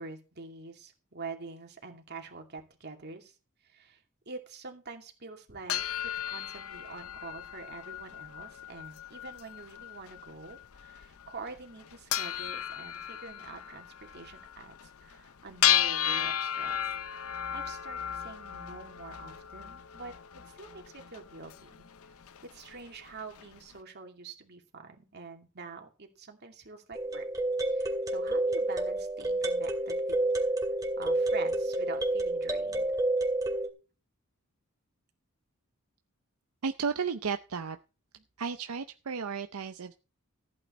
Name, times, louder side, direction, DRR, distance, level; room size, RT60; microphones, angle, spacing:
voice 1, 0.0-3.4 3.6-16.8 17.3-20.1 20.4-21.8 22.4-27.3 27.7-30.2 31.0-33.0 38.2-38.3, right 4 dB, 50° right, 3 dB, 2.5 m, -46 dB
sound 1, 5.7-23.6, left 10 dB, 75° left, 0.7 m, -35 dB
sound 2, 26.9-33.7, right 2 dB, 15° right, 2.3 m, -29 dB
voice 2, 36.6-37.8 38.4-39.9, right 5 dB, 80° right, 9 dB, 0.6 m, -33 dB
14.5 x 8.7 x 4.2 m, 0.33 s
head